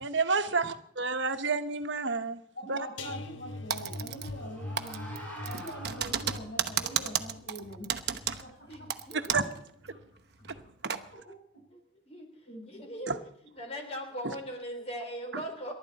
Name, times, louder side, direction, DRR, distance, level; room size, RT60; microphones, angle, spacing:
voice 1, 0.0-2.4 2.7-2.8 3.1-3.2 9.1-9.4 13.1-13.2, right 4 dB, 75° right, 1.1 m, -29 dB
voice 2, 2.5-5.1 5.4-8.9 9.2-9.3 9.9-10.0 10.5-10.6 11.1-11.8 12.5-12.9, equal, 60° left, 4.6 m, -45 dB
sound 1, 3.0-10.0 10.4-10.7 11.0-11.2, left 2 dB, 80° left, 1.3 m, -44 dB
Typing, 3.7-4.5 4.8-9.6 9.9-10.0 10.4-11.0, right 9 dB, 55° right, 0.9 m, -33 dB
sound 2, 3.9-6.7, right 1 dB, 10° left, 5.4 m, -47 dB
voice 3, 8.7-9.4 10.5-10.6 12.1-13.2 13.6-15.7, equal, 30° left, 3.6 m, -40 dB
28.0 x 12.0 x 4.2 m
head